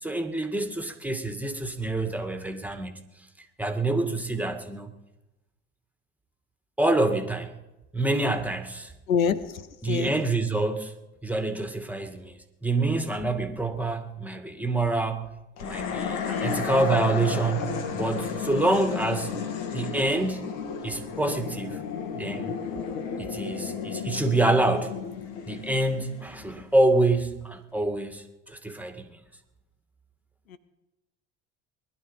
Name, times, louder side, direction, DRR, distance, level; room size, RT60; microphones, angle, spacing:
voice 1, 0.0-3.0 3.4-4.9 6.8-7.6 7.9-8.9 9.8-10.9 11.2-15.3 15.6-19.3 19.7-21.8 22.2-22.6 23.2-24.9 25.5-29.2, right 2 dB, 5° right, 2.1 m, -27 dB
voice 2, 9.1-10.1 16.3-16.7 30.5-30.6, left 7 dB, 90° left, 0.9 m, -27 dB
sound 1, 15.6-26.9, left 6 dB, 70° left, 2.2 m, -33 dB
21.0 x 12.0 x 5.4 m
hypercardioid pair, 65°, 40 cm